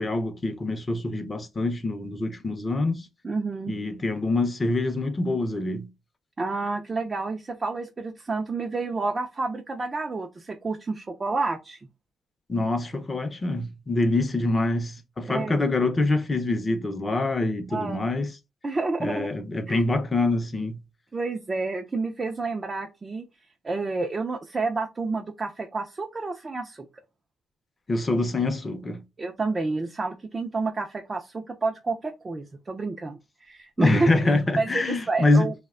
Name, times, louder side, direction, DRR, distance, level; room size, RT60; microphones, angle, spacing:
voice 1, 0.0-3.1 3.7-5.9 12.5-18.3 19.0-20.8 27.9-29.0 33.8-35.5, left 2 dB, 30° left, 0.5 m, -25 dB
voice 2, 3.2-3.7 6.4-11.8 15.3-15.6 17.7-18.0 18.6-19.3 19.7-19.8 21.1-23.3 23.6-26.9 29.2-34.1 34.6-35.5, right 3 dB, 30° right, 0.4 m, -29 dB
2.7 x 2.1 x 2.4 m
cardioid pair, 90°, 0 cm